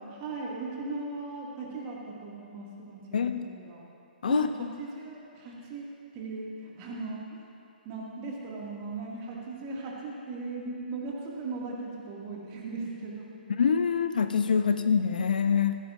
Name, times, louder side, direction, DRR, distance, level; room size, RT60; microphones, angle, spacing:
voice 1, 0.2-3.8 4.3-5.9 6.1-7.4 7.9-13.3, right 3 dB, 25° right, -3 dB, 2.0 m, -38 dB
voice 2, 13.5-15.8, left 6 dB, 55° left, 9 dB, 0.5 m, -25 dB
15.5 x 14.5 x 2.5 m, 2.7 s
figure-of-eight pair, 130°, 5 cm